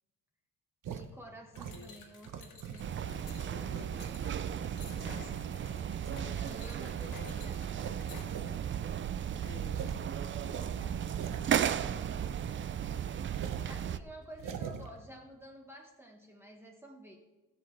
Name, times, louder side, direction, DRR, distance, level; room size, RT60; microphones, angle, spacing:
voice 1, 0.8-3.2 6.4-7.8 13.7-17.2, right 1 dB, 5° right, 0 dB, 1.1 m, -52 dB
sound 1, 0.8-1.1 1.5-2.9 3.3-5.4 6.0-6.3 6.8-6.9 7.2-7.4 7.7-8.5 8.8-8.9 9.2-9.3 9.7-10.0 10.4-12.5 12.8-12.9 13.3-13.7 14.3-14.9, right 7 dB, 65° right, 0.9 m, -43 dB
sound 2, 1.6-8.3, left 4 dB, 70° left, 1.9 m, -52 dB
sound 3, 2.8-14.0, right 9 dB, 35° right, 0.4 m, -35 dB
voice 2, 3.0-4.0 5.0-6.0 9.4-9.9, left 3 dB, 35° left, 2 dB, 1.8 m, -53 dB
16.5 x 7.7 x 3.3 m, 1.2 s
cardioid pair, 115°, 34 cm